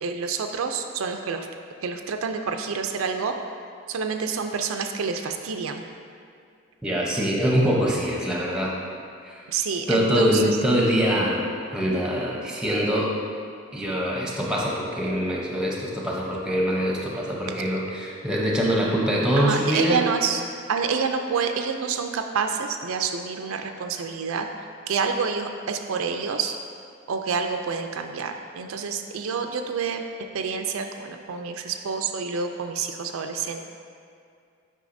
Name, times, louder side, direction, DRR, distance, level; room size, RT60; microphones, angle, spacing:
voice 1, 0.0-1.5 1.8-3.3 3.9-5.8 9.5-10.6 17.5-17.6 19.4-20.4 20.7-24.5 24.9-26.6 27.1-30.0 30.3-33.6, right 5 dB, 75° right, 5 dB, 0.4 m, -28 dB
voice 2, 6.8-8.7 9.3-9.4 9.9-11.4 11.7-13.1 13.7-20.0, equal, 5° right, -3 dB, 0.7 m, -24 dB
8.2 x 5.3 x 2.6 m, 2.3 s
head